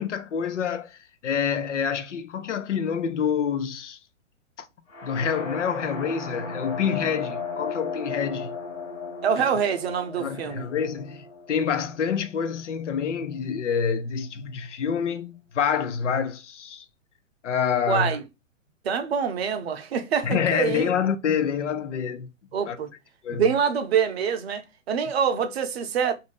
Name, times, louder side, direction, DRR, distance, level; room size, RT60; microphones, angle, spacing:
voice 1, 0.0-4.0 4.6-4.7 5.0-8.6 10.2-16.8 17.4-18.1 20.2-22.3 22.7-22.8 23.2-23.5, left 7 dB, 65° left, 0.6 m, -27 dB
sound 1, 4.9-12.8, left 4 dB, 85° left, 1.5 m, -36 dB
voice 2, 9.2-10.7 17.9-18.2 18.8-20.9 22.5-22.9 23.3-26.1, right 7 dB, 50° right, 0.7 m, -25 dB
2.6 x 2.5 x 3.6 m
figure-of-eight pair, 125°, 39 cm